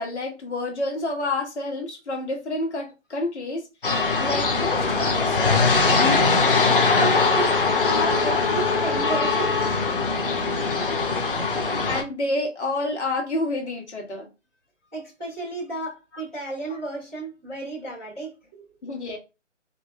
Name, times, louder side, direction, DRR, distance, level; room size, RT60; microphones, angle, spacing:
voice 1, 0.0-3.7 4.2-5.4 8.3-8.4 11.9-14.3 16.1-16.2 18.8-19.2, left 2 dB, 65° left, 1.2 m, -29 dB
sound 1, 3.8-12.0, left 4 dB, 45° left, 0.7 m, -22 dB
sound 2, 5.9-10.1, left 4 dB, 30° left, 1.2 m, -29 dB
voice 2, 6.9-9.8 14.9-18.6, right 2 dB, ahead, 0.9 m, -32 dB
3.1 x 2.6 x 2.2 m
hypercardioid pair, 170°, 37 cm